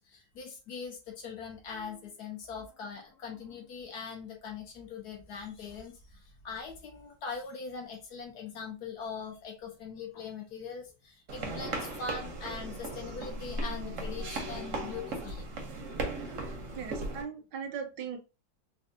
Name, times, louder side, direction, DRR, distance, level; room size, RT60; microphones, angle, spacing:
voice 1, 0.0-15.4 15.8-15.9 16.2-16.5, left 5 dB, 65° left, 1 dB, 1.3 m, -42 dB
sound 1, 11.3-17.2, right 2 dB, 60° right, 0.9 m, -37 dB
voice 2, 16.8-18.2, right 6 dB, 75° right, 6 dB, 1.2 m, -38 dB
4.1 x 2.3 x 2.6 m, 0.30 s
omnidirectional pair, 2.1 m